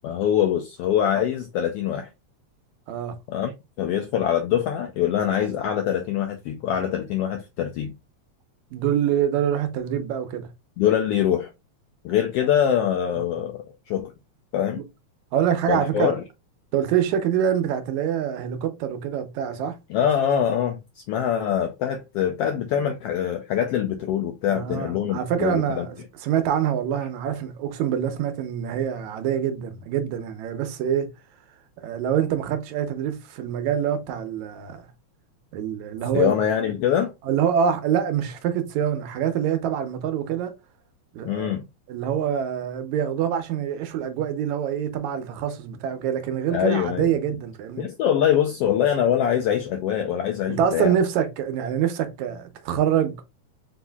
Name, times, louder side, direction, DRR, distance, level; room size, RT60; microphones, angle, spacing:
voice 1, 0.0-2.1 3.3-3.5 3.8-7.9 10.8-11.5 12.0-13.6 13.9-14.1 14.5-14.8 15.7-16.2 19.9-20.8 21.1-25.9 36.1-37.1 41.2-41.6 46.5-47.2 47.8-51.0, left 9 dB, 80° left, 1.3 m, -23 dB
voice 2, 8.7-10.5 13.1-13.4 15.3-16.1 16.7-19.8 24.5-31.1 31.8-34.9 35.5-36.4 37.2-40.5 41.1-41.5 41.9-47.9 50.5-53.3, right 9 dB, 80° right, 2.0 m, -25 dB
4.8 x 4.1 x 2.2 m
omnidirectional pair, 3.3 m